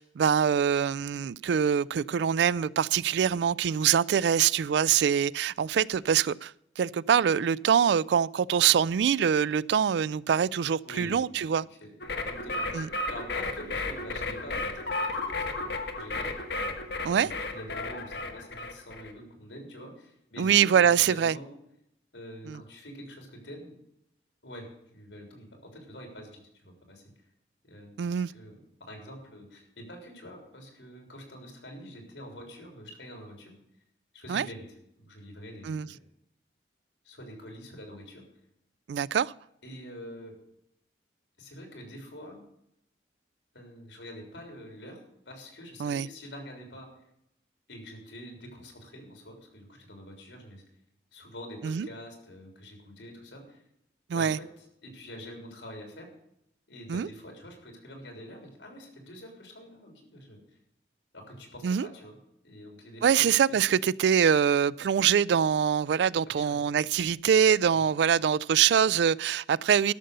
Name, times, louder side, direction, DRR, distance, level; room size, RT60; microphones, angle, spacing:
voice 1, 0.0-11.7 12.7-12.9 17.0-17.3 20.4-21.3 22.5-22.6 28.0-28.3 34.3-34.5 35.7-35.9 38.9-39.3 45.8-46.1 51.6-51.9 54.1-54.4 56.9-57.1 61.6-61.9 63.0-69.9, right 8 dB, 70° right, 0.3 m, -24 dB
voice 2, 10.8-11.3 11.8-11.9 12.2-16.5 17.2-21.5 22.1-23.8 24.4-27.0 27.6-33.5 34.1-34.7 35.0-36.0 37.0-38.2 39.6-40.3 41.4-42.4 43.5-46.9 47.7-50.6 51.1-53.6 54.1-56.1 56.7-60.4 61.1-62.2 62.4-63.7 66.4-66.6, equal, 85° left, 3.7 m, -46 dB
sound 1, 12.0-19.1, left 2 dB, 65° left, 1.3 m, -33 dB
13.0 x 6.7 x 6.6 m
head